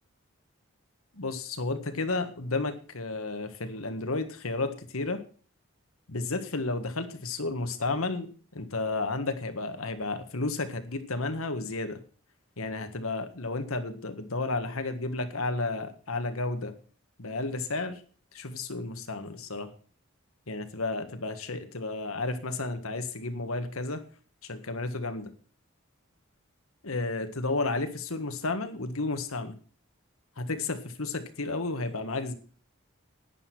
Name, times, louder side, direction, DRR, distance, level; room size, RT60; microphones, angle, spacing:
voice 1, 1.1-5.2 6.1-12.0 12.6-16.7 17.2-18.0 18.3-19.7 20.5-24.0 24.4-25.3 26.8-29.6 30.4-32.3, left 3 dB, 80° left, 9 dB, 1.7 m, -32 dB
11.0 x 10.0 x 6.1 m, 0.40 s
head